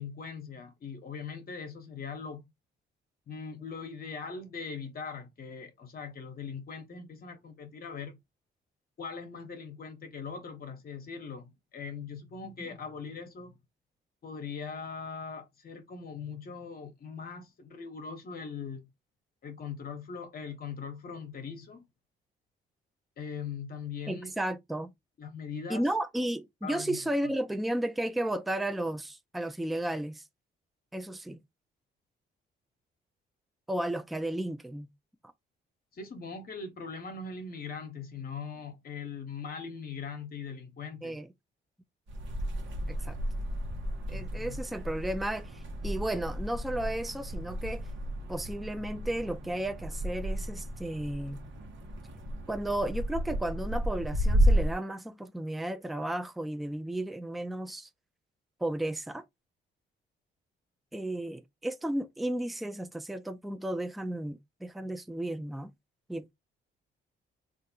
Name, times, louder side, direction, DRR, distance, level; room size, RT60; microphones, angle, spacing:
voice 1, 0.0-2.4 3.3-8.2 9.0-13.6 14.2-18.9 19.4-21.8 23.2-24.3 25.2-25.9 26.6-27.0 35.9-41.2 44.1-44.6, left 5 dB, 50° left, 0.9 m, -41 dB
voice 2, 24.1-24.9 25.7-30.2 30.9-31.4 33.7-34.9 41.0-41.3 42.9-43.2 44.1-47.9 48.3-51.4 52.5-57.9 58.6-59.2 60.9-65.7 66.1-66.3, right 1 dB, ahead, 0.3 m, -33 dB
sound 1, 42.1-54.7, equal, 70° right, 1.0 m, -32 dB
3.3 x 2.5 x 2.7 m
cardioid pair, 90°, 20 cm